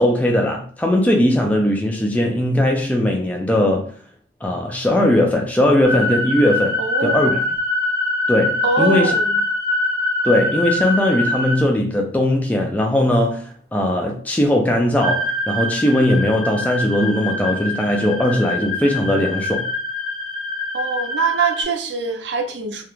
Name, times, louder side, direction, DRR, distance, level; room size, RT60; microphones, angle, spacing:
voice 1, 0.0-3.9 4.4-7.4 8.3-9.1 10.2-19.7, left 1 dB, 10° left, 0.3 m, -19 dB
sound 1, 5.8-11.6 15.0-21.6, left 1 dB, 25° left, 0.8 m, -24 dB
voice 2, 6.8-7.4 8.6-9.4 20.7-22.8, right 4 dB, 75° right, 0.5 m, -23 dB
2.4 x 2.1 x 2.9 m
head